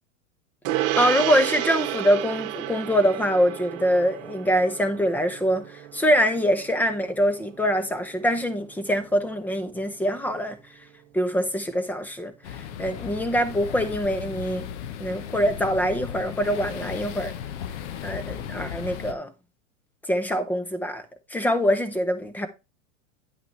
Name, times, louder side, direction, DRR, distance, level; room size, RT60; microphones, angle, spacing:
Gong, 0.6-10.4, right 13 dB, 40° right, 1.1 m, -32 dB
voice 1, 0.7-10.6 11.1-14.7 15.0-17.3 18.0-19.3 20.1-21.0 21.3-22.5, equal, 5° left, 0.6 m, -24 dB
sound 1, 12.4-19.1, left 9 dB, 60° left, 1.0 m, -36 dB
9.6 x 5.8 x 3.1 m
supercardioid pair, 140°, 39 cm